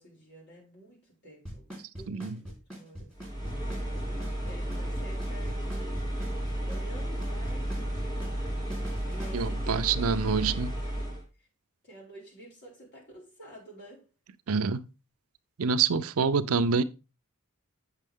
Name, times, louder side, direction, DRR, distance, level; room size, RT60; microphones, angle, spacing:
voice 1, 0.0-1.7 1.9-3.1 3.9-6.1 6.6-8.0 9.1-11.1 11.4-11.5 11.8-14.0 16.0-16.1, right 1 dB, 50° left, 4.8 m, -50 dB
Drum kit / Snare drum / Bass drum, 1.5-9.4, equal, 5° left, 3.9 m, -41 dB
voice 2, 2.1-2.4 9.3-10.8 14.5-14.8 15.6-16.8, right 5 dB, 70° right, 0.5 m, -26 dB
sound 1, 3.1-11.2, right 1 dB, 20° left, 3.2 m, -33 dB
8.4 x 6.6 x 3.6 m
head